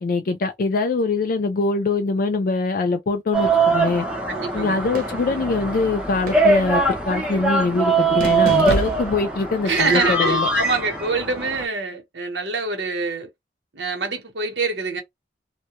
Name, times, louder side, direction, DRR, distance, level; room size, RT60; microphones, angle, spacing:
voice 1, 0.0-4.1 4.5-10.5, left 3 dB, 55° left, 0.4 m, -23 dB
sound 1, 3.3-11.6, right 3 dB, 5° right, 0.6 m, -22 dB
sound 2, 4.0-4.1 5.9-6.3 6.6-6.7 8.5-9.4, equal, 80° left, 0.7 m, -29 dB
voice 2, 4.3-4.8 9.6-13.3 13.7-15.0, right 4 dB, 85° right, 1.0 m, -25 dB
sound 3, 4.9-5.4 6.3-6.7 8.2-9.3, right 2 dB, 55° right, 0.8 m, -31 dB
2.2 x 2.1 x 2.8 m
head